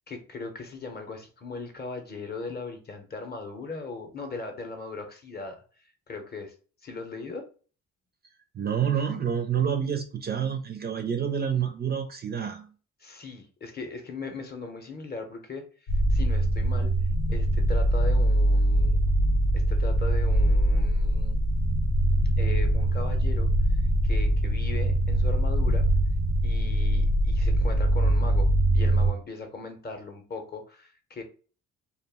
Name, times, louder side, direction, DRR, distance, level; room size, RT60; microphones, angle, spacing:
voice 1, 0.1-5.6 6.1-6.5 6.8-7.5 13.0-16.9 17.3-19.0 19.5-21.4 22.4-23.5 24.0-25.8 26.4-31.2, left 3 dB, 35° left, 0.7 m, -39 dB
voice 2, 8.5-12.7, right 8 dB, 35° right, 0.4 m, -28 dB
sound 1, 15.9-29.1, right 1 dB, 85° left, 0.7 m, -23 dB
2.3 x 2.1 x 3.4 m
cardioid pair, 90°, 30 cm